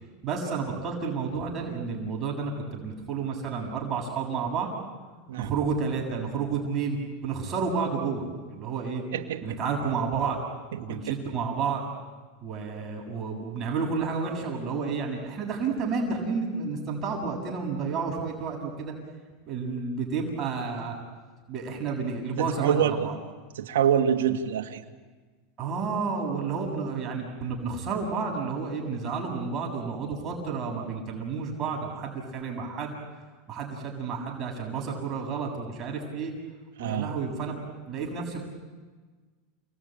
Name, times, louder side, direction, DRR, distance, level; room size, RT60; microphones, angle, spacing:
voice 1, 0.2-4.7 5.4-9.0 9.4-10.4 10.8-11.8 12.4-18.9 19.5-21.0 21.5-23.1 25.6-33.0 33.5-36.3 36.8-38.4, right 5 dB, 35° right, 0 dB, 7.2 m, -31 dB
voice 2, 9.1-9.4 10.9-11.0 22.4-23.0 23.6-24.8 36.8-37.1, right 9 dB, 85° right, 4 dB, 2.1 m, -25 dB
30.0 x 20.5 x 9.1 m, 1.4 s
supercardioid pair, 120°, 0 cm